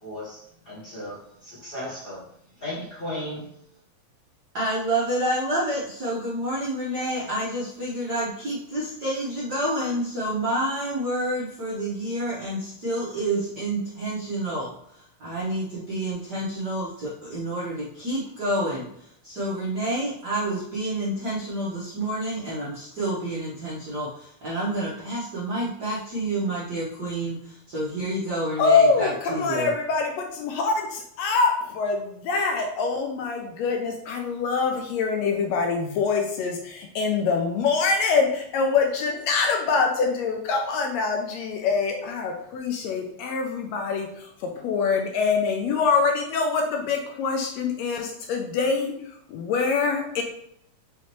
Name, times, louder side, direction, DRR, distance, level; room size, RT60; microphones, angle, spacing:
voice 1, 0.0-2.2 2.6-3.5, left 1 dB, 40° left, -8 dB, 0.7 m, -36 dB
voice 2, 4.5-29.7, right 1 dB, 70° right, -7 dB, 0.9 m, -29 dB
voice 3, 28.6-50.2, left 4 dB, 80° left, 2 dB, 1.6 m, -24 dB
5.6 x 3.1 x 3.0 m, 0.72 s
omnidirectional pair, 3.3 m